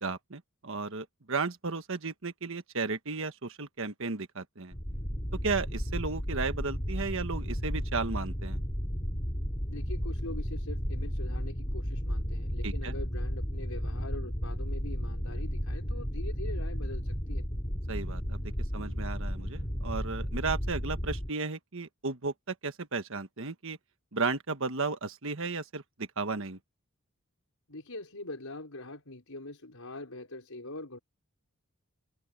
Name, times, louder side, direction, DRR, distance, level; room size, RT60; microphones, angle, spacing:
voice 1, 0.0-4.7 5.4-8.6 12.6-12.9 17.9-18.4 18.7-23.8 24.1-26.6, right 4 dB, 60° right, 1.4 m, -34 dB
sound 1, 4.7-21.3, equal, 25° left, 4.3 m, -33 dB
voice 2, 9.7-17.4 27.7-31.0, left 2 dB, 75° left, 5.0 m, -43 dB
head